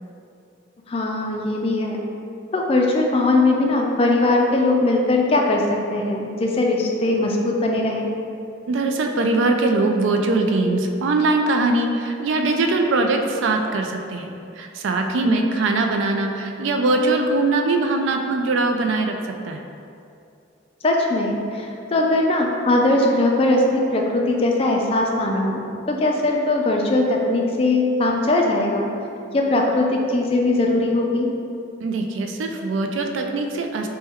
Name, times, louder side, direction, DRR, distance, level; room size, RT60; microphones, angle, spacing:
voice 1, 0.9-2.0 2.5-5.6 5.9-8.1 15.2-15.5 20.8-28.9 29.3-31.3, left 2 dB, 30° left, 0 dB, 0.3 m, -20 dB
voice 2, 8.7-14.3 14.6-19.2 19.4-19.6 31.8-33.9, right 2 dB, 70° right, 4 dB, 0.3 m, -21 dB
4.3 x 2.2 x 3.5 m, 2.6 s
head